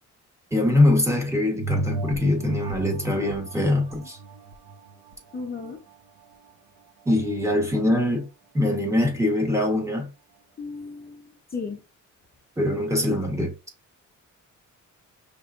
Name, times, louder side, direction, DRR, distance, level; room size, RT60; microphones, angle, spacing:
voice 1, 0.5-4.2 7.1-8.3 8.5-10.1 12.6-13.5, left 1 dB, 10° right, 1.1 m, -23 dB
sound 1, 1.6-6.5 7.0-7.1, right 3 dB, 65° right, 0.7 m, -34 dB
voice 2, 5.3-5.8 10.6-11.8, left 4 dB, 30° left, 0.8 m, -35 dB
5.4 x 3.3 x 2.4 m
cardioid pair, 165°, 31 cm